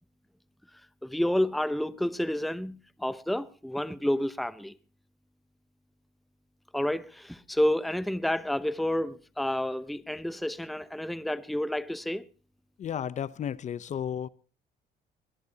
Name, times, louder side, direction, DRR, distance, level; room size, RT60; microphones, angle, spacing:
voice 1, 1.0-4.7 6.7-12.3, left 1 dB, ahead, 0.7 m, -30 dB
voice 2, 12.8-14.3, left 9 dB, 45° left, 0.7 m, -33 dB
21.5 x 21.0 x 2.8 m
cardioid pair, 110°, 17 cm